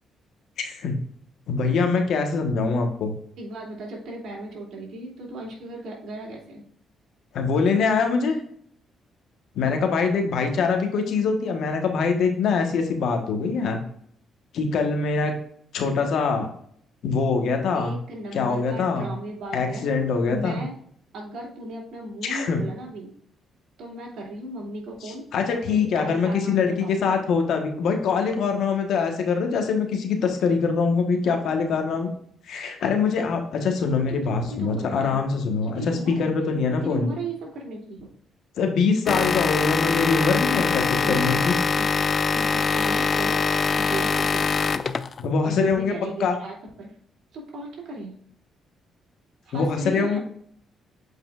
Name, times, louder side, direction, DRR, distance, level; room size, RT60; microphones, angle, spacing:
voice 1, 0.6-1.0 1.5-3.1 7.3-8.4 9.5-13.8 14.5-15.3 15.7-16.5 17.0-17.9 18.3-19.1 19.5-20.6 22.2-22.6 25.0-32.1 32.5-37.1 38.6-41.5 45.2-45.9 46.2-46.4 49.5-50.2, left 5 dB, 75° left, 4 dB, 1.2 m, -23 dB
voice 2, 3.4-6.6 17.7-19.9 20.3-20.8 21.1-23.1 23.8-25.2 25.5-27.1 34.1-35.2 35.7-36.3 36.8-38.1 40.6-41.9 42.3-43.4 43.7-44.8 45.4-46.9 47.3-48.1 49.4-50.2, right 2 dB, 70° right, -2 dB, 2.7 m, -36 dB
sound 1, 39.1-45.2, left 5 dB, 40° left, 0.3 m, -23 dB
8.1 x 4.8 x 2.4 m, 0.64 s
cardioid pair, 90°, 0 cm